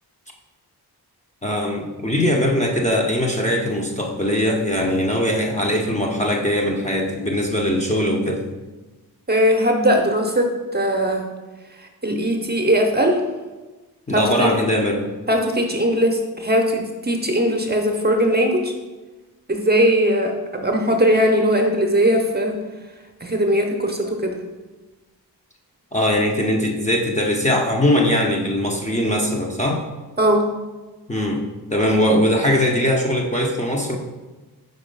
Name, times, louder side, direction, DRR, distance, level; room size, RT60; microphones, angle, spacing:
voice 1, 1.4-8.5 14.1-15.1 25.9-29.8 31.1-31.4 31.7-34.0, left 1 dB, 20° left, -1 dB, 0.7 m, -21 dB
voice 2, 9.3-11.3 12.0-13.2 14.1-14.5 15.3-18.7 19.5-22.6 23.2-24.3 30.2-30.4, equal, 25° right, 2 dB, 0.8 m, -19 dB
5.3 x 4.2 x 5.4 m, 1.2 s
wide cardioid pair, 125°, 39 cm